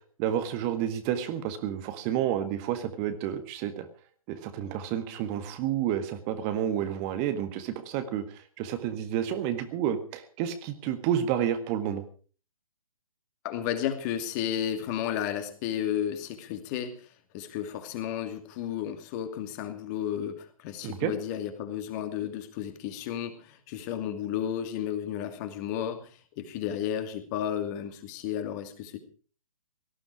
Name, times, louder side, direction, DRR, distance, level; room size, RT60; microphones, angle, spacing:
voice 1, 0.2-3.9 4.3-12.0 20.8-21.1, right 10 dB, 25° right, 9 dB, 1.7 m, -30 dB
voice 2, 13.4-16.9 17.3-26.1 26.4-29.0, left 10 dB, 30° left, 8 dB, 2.5 m, -33 dB
18.0 x 14.0 x 4.9 m, 0.41 s
figure-of-eight pair, 130°, 18 cm